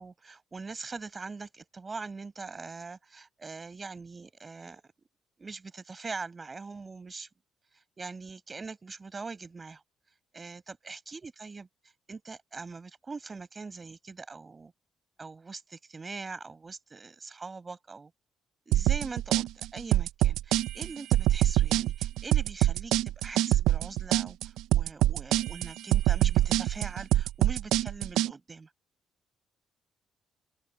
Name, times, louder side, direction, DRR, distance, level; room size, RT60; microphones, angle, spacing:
voice 1, 0.0-4.9 5.4-7.3 7.7-9.8 10.3-14.7 15.2-18.1 18.7-28.7, right 4 dB, 30° right, 5.6 m, -42 dB
sound 1, 18.7-28.3, right 14 dB, 85° right, 0.8 m, -25 dB
open air
supercardioid pair, 70°, 0 cm